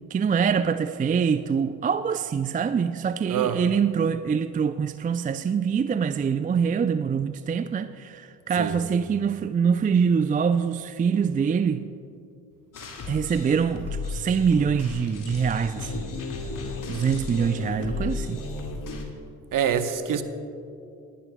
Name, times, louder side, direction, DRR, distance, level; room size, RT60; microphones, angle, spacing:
voice 1, 0.1-11.8 13.1-16.0 16.9-18.4, right 6 dB, 20° right, 11 dB, 0.4 m, -24 dB
voice 2, 3.3-3.6 8.5-8.8 19.5-20.2, right 8 dB, 50° right, 9 dB, 1.1 m, -25 dB
sound 1, 12.7-19.1, left 3 dB, 50° left, 2.2 m, -34 dB
29.0 x 11.5 x 2.3 m, 2.6 s
hypercardioid pair, 45°, 41 cm